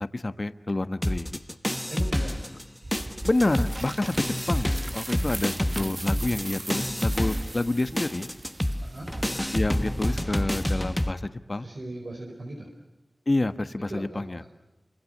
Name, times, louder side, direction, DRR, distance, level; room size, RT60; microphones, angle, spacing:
voice 1, 0.1-1.3 3.2-8.3 9.5-11.7 13.3-14.4, left 2 dB, 40° left, 11 dB, 1.3 m, -28 dB
sound 1, 1.0-2.6 2.9-11.1, left 1 dB, 10° left, 1.2 m, -28 dB
voice 2, 1.9-2.5 8.8-9.1 11.6-12.7 13.9-14.5, right 1 dB, 65° right, 1 dB, 4.6 m, -39 dB
sound 2, 2.8-10.2, right 2 dB, 40° right, 1.6 m, -39 dB
30.0 x 25.0 x 6.6 m, 1.0 s
wide cardioid pair, 65°, 0 cm